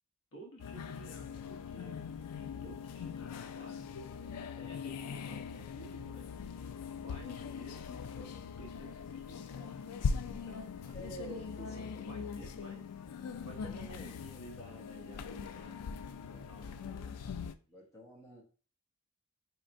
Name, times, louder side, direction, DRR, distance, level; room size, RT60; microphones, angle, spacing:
voice 1, 0.3-2.1 2.3-6.3 6.9-9.8 10.2-12.9 13.4-15.8 16.2-17.2, equal, 65° left, 1 dB, 1.0 m, -53 dB
sound 1, 0.6-17.5, left 6 dB, 90° left, 0.4 m, -41 dB
voice 2, 10.9-12.1 16.1-16.5 17.7-18.4, right 1 dB, 15° left, -4 dB, 1.0 m, -49 dB
4.4 x 2.8 x 2.6 m, 0.37 s
head